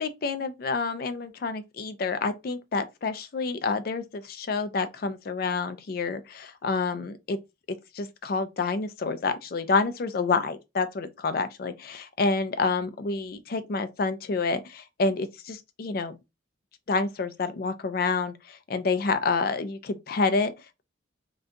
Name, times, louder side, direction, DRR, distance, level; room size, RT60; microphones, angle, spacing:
voice 1, 0.0-7.4 7.9-16.1 16.9-20.5, left 4 dB, 50° left, 0.4 m, -28 dB
3.7 x 2.3 x 2.6 m
head